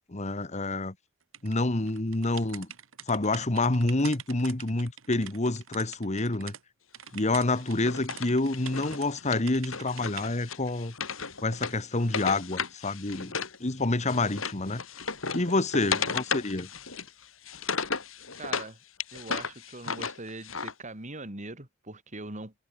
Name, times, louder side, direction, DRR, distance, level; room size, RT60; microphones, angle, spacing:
voice 1, 0.1-0.9 1.4-2.7 3.1-6.5 7.1-10.9 11.4-13.3 13.6-14.8 15.3-16.7, left 2 dB, 35° left, 1.5 m, -28 dB
sound 1, 1.3-6.6 6.9-9.1 9.5-10.3, right 9 dB, 85° right, 4.3 m, -45 dB
Wood, 7.5-13.6 13.8-18.7 19.0-20.7, left 5 dB, 90° left, 5.3 m, -35 dB
voice 2, 15.7-16.2 17.7-17.9 18.4-18.8 19.1-22.5, right 2 dB, 40° right, 4.4 m, -42 dB
head